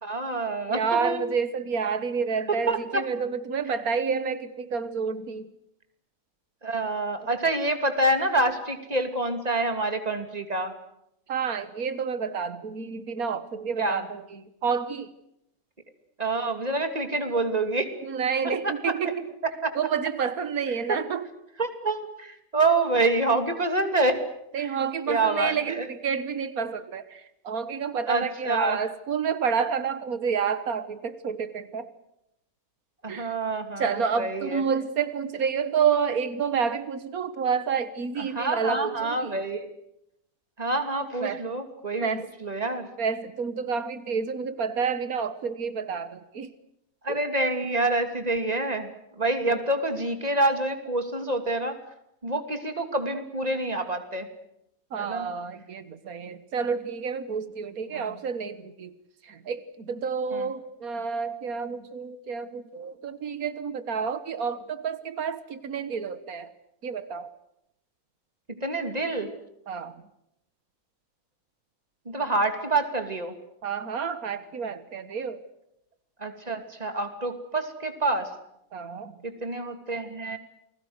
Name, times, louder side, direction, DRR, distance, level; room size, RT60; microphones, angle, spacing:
voice 1, 0.0-1.2 2.5-3.0 6.6-10.7 13.8-14.0 16.2-17.9 18.6-18.7 19.6-19.7 21.6-24.2 24.6-24.8 25.1-25.8 28.1-28.8 33.0-34.6 38.3-39.7 40.6-42.1 42.4-42.9 47.0-48.9 49.2-51.8 52.2-54.3 55.0-55.3 57.9-58.1 60.3-60.5 68.6-69.3 72.1-73.3 76.2-78.3 79.2-80.4, right 2 dB, 25° right, 7 dB, 2.9 m, -27 dB
voice 2, 0.7-5.5 7.2-7.3 11.3-15.1 18.0-19.3 19.8-21.3 24.5-31.9 33.1-33.3 33.8-39.4 41.2-41.4 42.0-42.3 43.0-46.5 47.1-47.2 49.5-49.6 54.9-59.0 59.2-66.5 66.8-67.3 69.7-70.0 73.6-75.4 78.7-79.2, right 6 dB, 90° right, 13 dB, 1.8 m, -29 dB
29.5 x 21.0 x 8.0 m, 0.80 s
omnidirectional pair, 1.5 m